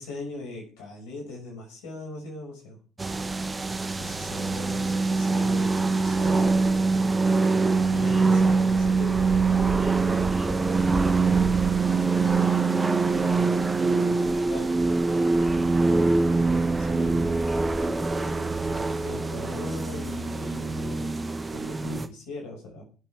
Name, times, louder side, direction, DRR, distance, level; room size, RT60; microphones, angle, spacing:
voice 1, 0.0-2.8 3.9-6.6 7.9-9.3 14.5-14.7 16.7-17.3 19.0-21.1 21.5-22.8, left 2 dB, 70° left, -1 dB, 6.1 m, -39 dB
sound 1, 3.0-22.1, right 4 dB, 20° right, 1.4 m, -24 dB
voice 2, 7.8-8.5 9.6-16.8 17.5-18.6, left 2 dB, 30° left, 0 dB, 5.8 m, -44 dB
19.5 x 8.2 x 3.6 m, 0.39 s
hypercardioid pair, 55°, 0 cm